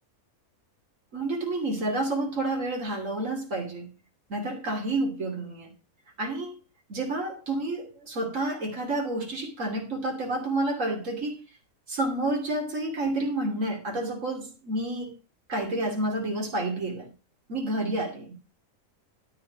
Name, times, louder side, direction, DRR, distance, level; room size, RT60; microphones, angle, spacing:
voice 1, 1.1-3.9 4.3-5.7 6.2-6.5 6.9-11.4 11.9-15.1 15.5-17.1 17.5-18.3, right 2 dB, 60° right, 3.2 m, -29 dB
12.5 x 5.7 x 6.1 m
omnidirectional pair, 1.5 m